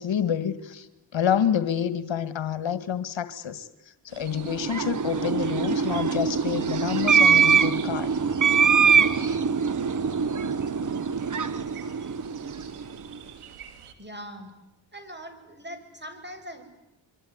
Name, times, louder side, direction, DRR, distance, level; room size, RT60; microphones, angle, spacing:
voice 1, 0.0-8.1, left 8 dB, 65° left, 13 dB, 1.9 m, -28 dB
sound 1, 4.1-13.9, right 8 dB, 90° right, 3.3 m, -46 dB
sound 2, 4.4-12.9, right 6 dB, 40° right, 1.4 m, -23 dB
voice 2, 14.0-14.5 14.9-16.6, equal, 20° right, 9 dB, 6.8 m, -41 dB
26.5 x 23.5 x 9.6 m, 0.91 s
cardioid pair, 55°, 49 cm